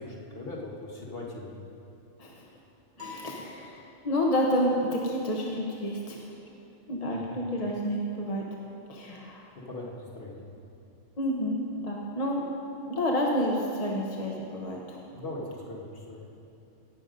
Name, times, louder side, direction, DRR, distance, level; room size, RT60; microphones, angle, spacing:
voice 1, 0.0-1.7 7.1-7.4 9.1-9.2 9.7-10.4 15.1-16.2, left 2 dB, 50° left, -3 dB, 1.9 m, -40 dB
voice 2, 3.0-3.8 4.0-6.3 6.9-8.4 8.9-9.5 11.2-12.4 12.9-15.0, equal, 30° left, -1 dB, 1.0 m, -29 dB
sound 1, 3.0-4.4, left 4 dB, 35° right, 2.6 m, -46 dB
17.5 x 7.1 x 5.3 m, 2.8 s
omnidirectional pair, 1.3 m